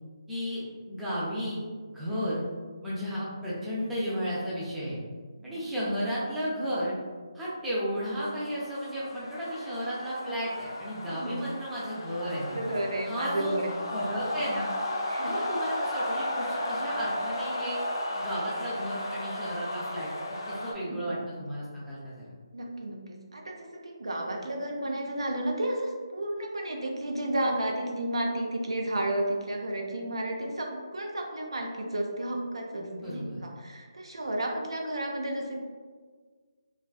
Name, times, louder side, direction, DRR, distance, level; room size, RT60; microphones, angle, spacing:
voice 1, 0.3-0.6 0.9-1.7 1.9-2.4 2.8-5.0 5.4-6.9 7.3-12.6 13.1-13.6 13.9-14.7 15.3-17.8 18.1-22.3 32.8-33.4, equal, 5° right, -10 dB, 0.5 m, -33 dB
voice 2, 5.4-5.9 11.0-11.4 12.5-13.7 15.1-15.4 20.8-21.2 22.5-35.6, right 1 dB, 80° right, 1 dB, 0.4 m, -32 dB
sound 1, 8.1-20.7, left 1 dB, 50° left, 0.4 m, -34 dB
2.4 x 2.3 x 2.3 m, 1.5 s
figure-of-eight pair, 155°, 3 cm